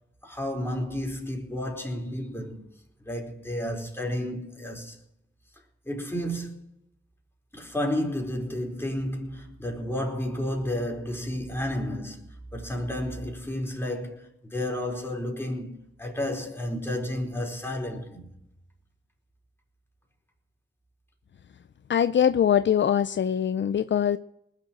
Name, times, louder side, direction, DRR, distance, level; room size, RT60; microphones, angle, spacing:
voice 1, 0.2-2.6 3.0-5.0 5.8-6.6 7.5-18.3, left 1 dB, 10° left, 4.4 m, -31 dB
voice 2, 21.9-24.2, left 9 dB, 70° left, 0.5 m, -22 dB
19.5 x 7.5 x 7.5 m
cardioid pair, 55°, 20 cm